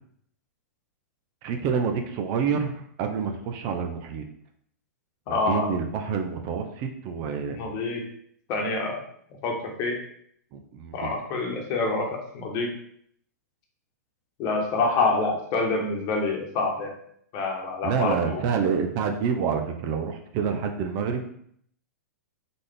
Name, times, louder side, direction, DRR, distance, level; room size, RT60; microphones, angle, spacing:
voice 1, 1.4-4.2 5.3-7.6 10.5-11.1 17.8-21.2, right 6 dB, 40° right, 5 dB, 0.7 m, -28 dB
voice 2, 5.3-5.7 7.5-8.0 8.5-9.0 9.4-10.0 10.9-12.1 12.3-12.7 14.4-16.9 17.3-18.4, left 3 dB, 40° left, 1 dB, 1.2 m, -26 dB
3.9 x 3.8 x 3.4 m, 0.65 s
hypercardioid pair, 120°, 9 cm